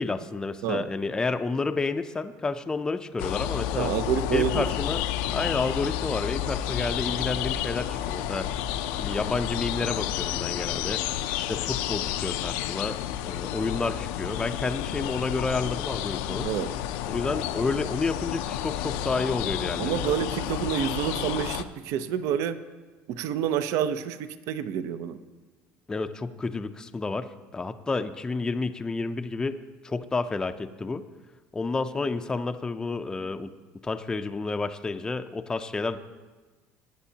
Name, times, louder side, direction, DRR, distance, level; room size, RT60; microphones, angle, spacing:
voice 1, 0.0-3.9 4.3-5.1 5.3-8.5 9.0-11.0 11.4-13.0 13.2-16.5 17.1-20.1 25.9-31.0 31.5-33.5 33.8-36.0, left 3 dB, 15° left, 8 dB, 0.4 m, -30 dB
sound 1, 3.2-21.6, left 11 dB, 90° left, 0.5 m, -31 dB
voice 2, 3.8-4.7 16.4-16.7 19.8-22.6 23.1-25.2, right 9 dB, 65° right, 12 dB, 0.6 m, -28 dB
18.5 x 9.1 x 2.8 m, 1.3 s
cardioid pair, 135°, 5 cm